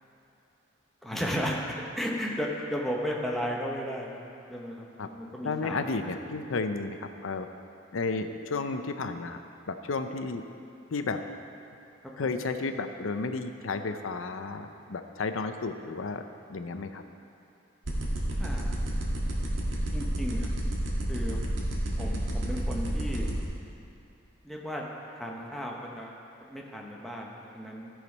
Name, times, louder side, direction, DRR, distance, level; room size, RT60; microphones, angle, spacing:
voice 1, 1.0-4.2 4.5-6.3 18.4-18.7 19.9-20.5 21.1-21.4 22.0-23.3 24.4-24.8 25.1-26.2 26.5-27.9, equal, ahead, -2 dB, 0.8 m, -34 dB
voice 2, 5.4-7.5 7.9-9.4 9.7-10.4 10.9-11.2 12.2-16.2 16.5-17.0, left 3 dB, 85° left, 7 dB, 0.6 m, -32 dB
sound 1, 17.9-23.4, right 1 dB, 80° right, 1.6 m, -32 dB
14.0 x 5.0 x 5.3 m, 2.8 s
head